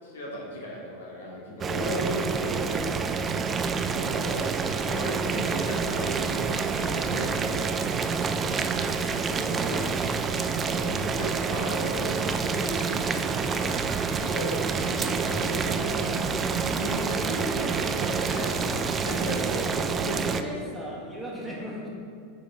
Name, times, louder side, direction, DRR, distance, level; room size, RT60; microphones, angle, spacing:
voice 1, 0.0-8.0 9.7-9.8 10.6-20.3, equal, 70° left, -3 dB, 1.3 m, -36 dB
Boiling, 1.6-20.4, right 5 dB, 25° right, 0.3 m, -28 dB
voice 2, 1.8-2.9 9.3-10.1 19.1-19.9 20.2-21.9, equal, 5° right, -5 dB, 1.5 m, -39 dB
sound 1, 4.4-18.9, left 2 dB, 30° left, 1.2 m, -44 dB
6.1 x 4.6 x 3.4 m, 2.3 s
figure-of-eight pair, 85°, 0 cm